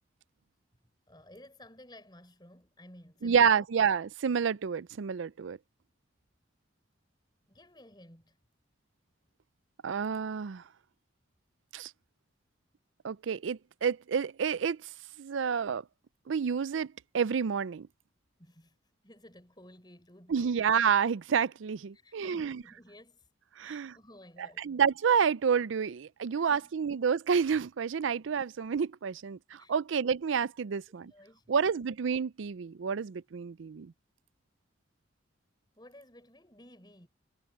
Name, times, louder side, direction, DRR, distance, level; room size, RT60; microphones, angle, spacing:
voice 1, 1.1-3.7 7.5-8.4 18.4-18.8 19.0-20.6 21.9-23.3 23.6-24.6 26.3-26.7 29.5-29.8 30.7-31.7 35.8-37.1, left 1 dB, 20° left, 5.2 m, -55 dB
voice 2, 3.2-5.6 9.8-10.6 11.7-11.9 13.0-14.8 15.2-15.8 16.3-17.9 20.3-22.6 23.6-23.9 24.6-31.1 31.5-33.9, right 6 dB, 80° right, 0.4 m, -29 dB
head